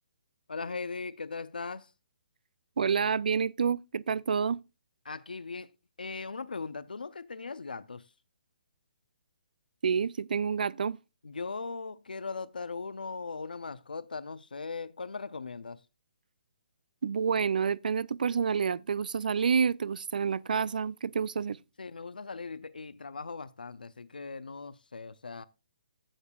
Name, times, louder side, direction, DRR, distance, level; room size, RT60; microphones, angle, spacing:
voice 1, 0.5-1.9 5.0-5.7 6.0-8.1 11.2-15.8 21.8-25.4, left 4 dB, 90° left, 0.6 m, -39 dB
voice 2, 2.8-4.6 9.8-11.0 17.0-21.6, right 6 dB, 70° right, 0.4 m, -28 dB
15.0 x 6.6 x 2.3 m
hypercardioid pair, 145°, 5 cm